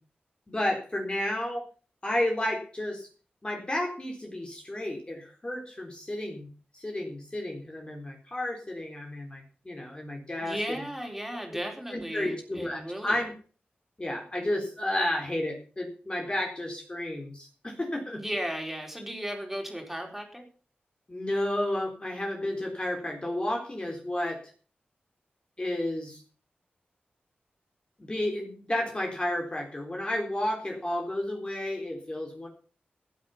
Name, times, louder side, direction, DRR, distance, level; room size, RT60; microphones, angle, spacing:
voice 1, 0.5-1.6 2.0-3.1 3.4-6.5 6.7-10.8 11.9-13.3 14.0-18.2 21.1-24.4 25.6-26.2 28.0-32.5, left 1 dB, 25° left, 2 dB, 3.9 m, -32 dB
voice 2, 10.4-13.1 18.2-20.5, equal, 5° right, 2 dB, 4.6 m, -35 dB
15.5 x 9.5 x 5.8 m, 0.40 s
wide cardioid pair, 70°, 4 cm